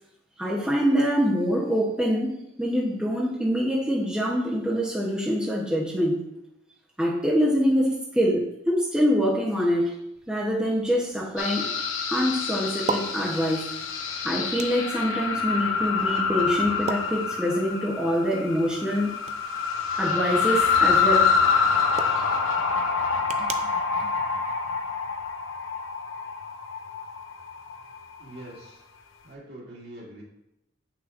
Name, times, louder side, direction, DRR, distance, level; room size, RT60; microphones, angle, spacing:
voice 1, 0.4-6.2 7.0-10.0 10.3-11.7 12.1-13.7 14.2-19.1 20.0-21.3 22.1-22.2 23.4-23.5, equal, 5° right, -5 dB, 0.8 m, -25 dB
sound 1, 10.1-25.3, right 5 dB, 35° right, 0.4 m, -41 dB
sound 2, 11.4-28.2, left 5 dB, 90° left, 0.7 m, -26 dB
voice 2, 28.2-28.8 29.2-30.2, right 1 dB, 55° right, -4 dB, 2.1 m, -43 dB
8.0 x 5.9 x 2.5 m, 0.85 s
head